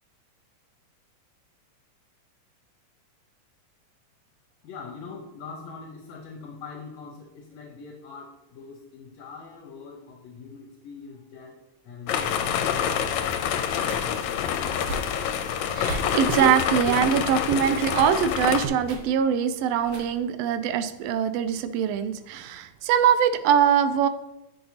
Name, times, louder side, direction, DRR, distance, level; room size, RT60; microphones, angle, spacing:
voice 1, 4.6-11.6 11.9-13.0, left 4 dB, 70° left, 1 dB, 2.1 m, -42 dB
sound 1, 12.1-18.7, left 8 dB, 90° left, 2.0 m, -27 dB
sound 2, 13.9-14.3 14.8-15.2 15.8-16.5 16.8-17.1 17.8-18.1 18.8-19.2 19.8-20.2, right 2 dB, 65° right, 1.7 m, -38 dB
voice 2, 15.7-24.1, right 8 dB, 80° right, 10 dB, 1.4 m, -23 dB
10.5 x 6.6 x 2.8 m, 0.94 s
omnidirectional pair, 3.3 m